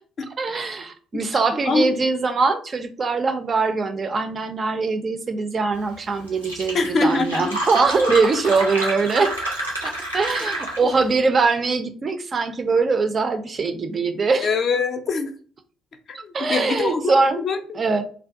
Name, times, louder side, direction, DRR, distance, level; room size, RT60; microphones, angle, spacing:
voice 1, 0.4-9.3 9.8-14.5 16.3-17.4 17.7-18.0, right 4 dB, 35° right, 7 dB, 0.3 m, -22 dB
Fill (with liquid), 6.0-6.1 6.3-11.1, right 1 dB, 90° right, 0.6 m, -29 dB
voice 2, 6.7-7.5 14.4-15.3 16.1-17.8, left 4 dB, 45° left, 6 dB, 0.4 m, -23 dB
2.5 x 2.2 x 2.5 m, 0.44 s
figure-of-eight pair, 50°, 0 cm